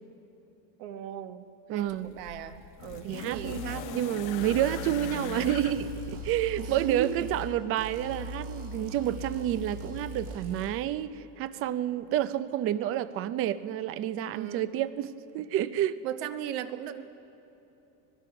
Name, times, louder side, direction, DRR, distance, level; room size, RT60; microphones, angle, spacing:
voice 1, 0.8-1.4 1.7-4.1 6.6-7.3 14.3-14.7 16.0-17.0, right 10 dB, 60° right, 9 dB, 1.2 m, -37 dB
voice 2, 1.7-2.1 3.0-3.6 3.9-16.0, right 12 dB, 30° right, 15 dB, 0.5 m, -29 dB
sound 1, 1.8-7.0 8.1-8.2, left 11 dB, 45° left, 0.8 m, -42 dB
sound 2, 3.3-3.8 4.2-7.5 7.8-10.7, equal, 90° right, 6.8 m, -40 dB
25.0 x 19.5 x 5.8 m, 3.0 s
cardioid pair, 160°, 45 cm